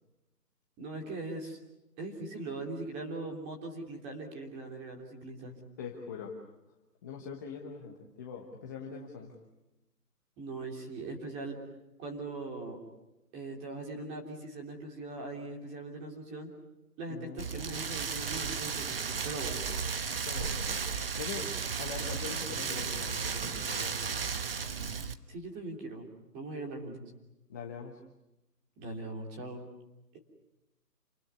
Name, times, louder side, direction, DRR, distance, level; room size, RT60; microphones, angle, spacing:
voice 1, 0.8-1.6 2.0-5.6 10.4-11.6 12.0-12.8 13.3-16.5 17.0-19.6 25.3-26.1 26.3-27.0 28.8-29.7, right 2 dB, 15° right, 1 dB, 3.2 m, -40 dB
voice 2, 5.8-6.3 7.0-9.3 17.1-17.4 19.6-19.8 20.3-20.8 21.2-24.4 27.5-28.0, left 6 dB, 10° left, 0 dB, 1.2 m, -42 dB
Rain, 17.4-25.1, right 6 dB, 35° right, 1.1 m, -34 dB
29.0 x 20.0 x 9.6 m, 0.97 s
hypercardioid pair, 165°, 48 cm